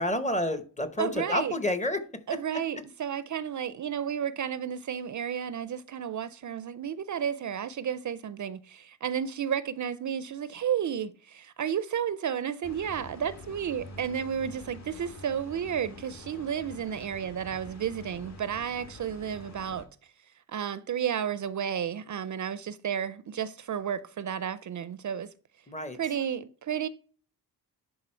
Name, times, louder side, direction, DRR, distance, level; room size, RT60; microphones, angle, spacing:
voice 1, 0.0-2.0 25.7-26.0, left 1 dB, 20° left, 0.8 m, -29 dB
voice 2, 1.0-1.6 2.3-19.9 20.5-25.3 25.9-26.9, right 8 dB, 50° right, 0.4 m, -32 dB
sound 1, 12.6-19.9, left 2 dB, 45° left, 1.6 m, -47 dB
11.0 x 3.9 x 4.3 m
wide cardioid pair, 150°, 38 cm